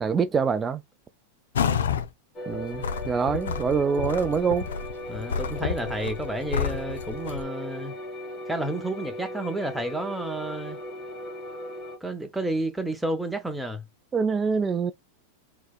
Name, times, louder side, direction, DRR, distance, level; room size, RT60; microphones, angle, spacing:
voice 1, 0.0-0.8 2.5-4.7 14.1-14.9, right 6 dB, 20° right, 0.3 m, -25 dB
sound 1, 1.5-2.1 2.5-7.4, left 7 dB, 90° left, 0.5 m, -30 dB
sound 2, 2.3-12.0, left 1 dB, 30° left, 1.5 m, -38 dB
voice 2, 5.1-7.9 8.5-10.8 12.0-13.8, right 1 dB, 5° right, 0.8 m, -31 dB
4.4 x 3.0 x 2.3 m
hypercardioid pair, 120°, 0 cm